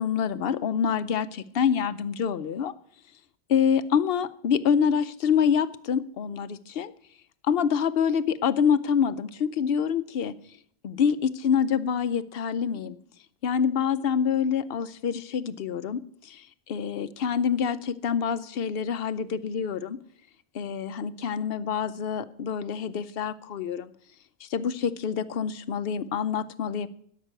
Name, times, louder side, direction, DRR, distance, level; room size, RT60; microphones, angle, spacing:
voice 1, 0.0-2.7 3.5-6.9 7.4-10.3 10.8-12.9 13.4-20.0 20.5-23.9 24.4-26.9, left 7 dB, 70° left, 14 dB, 0.9 m, -26 dB
12.5 x 5.9 x 8.8 m, 0.64 s
omnidirectional pair, 1.0 m